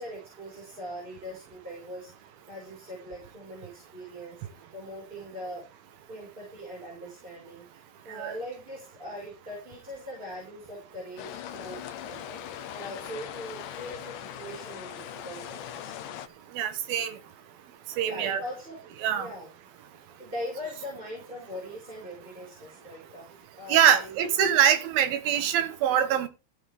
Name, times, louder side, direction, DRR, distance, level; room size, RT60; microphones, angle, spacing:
voice 1, 0.0-2.1 2.5-4.4 4.7-5.6 6.1-12.4 12.7-15.9 18.0-19.5 20.2-24.3 24.6-24.7, equal, 15° right, 5.2 m, -41 dB
sound 1, 11.2-16.3, left 11 dB, 75° left, 2.3 m, -40 dB
voice 2, 16.6-17.1 18.0-18.4 19.0-19.3 23.7-26.3, right 9 dB, 80° right, 3.0 m, -23 dB
15.0 x 8.0 x 3.5 m
omnidirectional pair, 4.2 m